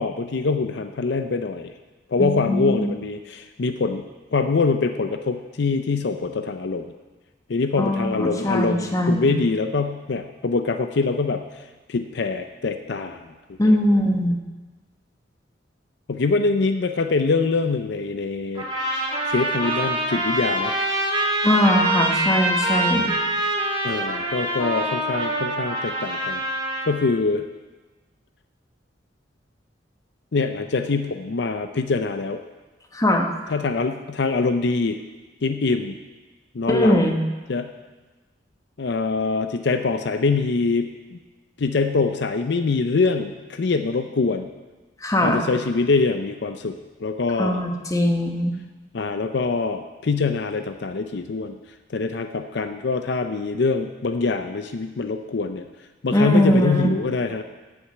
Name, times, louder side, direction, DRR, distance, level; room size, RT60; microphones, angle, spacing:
voice 1, 0.0-1.7 2.1-4.0 4.3-6.8 7.5-11.4 11.9-13.3 13.6-13.8 16.1-18.7 19.3-20.7 23.8-26.4 26.9-27.4 30.3-32.4 33.5-35.0 35.4-35.9 36.5-37.0 37.5-37.7 38.8-41.2 41.6-44.5 45.2-47.6 48.9-51.6 51.9-55.7 56.0-57.4, left 4 dB, 65° left, 7 dB, 0.5 m, -24 dB
voice 2, 2.2-2.9 7.8-9.3 13.6-14.4 21.4-23.1 32.9-33.3 36.7-37.2 45.0-45.4 47.4-48.5 56.1-56.9, left 1 dB, 20° left, 3 dB, 1.1 m, -20 dB
sound 1, 18.5-26.9, right 1 dB, 25° right, 2.4 m, -25 dB
8.9 x 8.0 x 7.6 m, 1.2 s
head